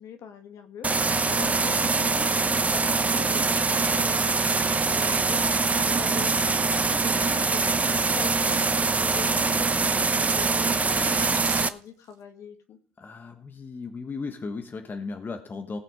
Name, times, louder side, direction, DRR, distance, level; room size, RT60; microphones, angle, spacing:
voice 1, 0.0-8.6 9.0-12.8, left 7 dB, 60° left, 6 dB, 2.1 m, -43 dB
sound 1, 0.8-11.7, right 4 dB, 25° right, 0.8 m, -23 dB
sound 2, 8.6-8.7 9.4-9.5 10.3-10.4 10.9-12.1, right 8 dB, 60° right, 1.8 m, -40 dB
voice 2, 13.0-15.8, left 4 dB, 35° left, 6 dB, 1.4 m, -36 dB
18.5 x 6.6 x 5.2 m, 0.40 s
hypercardioid pair, 65°, 6 cm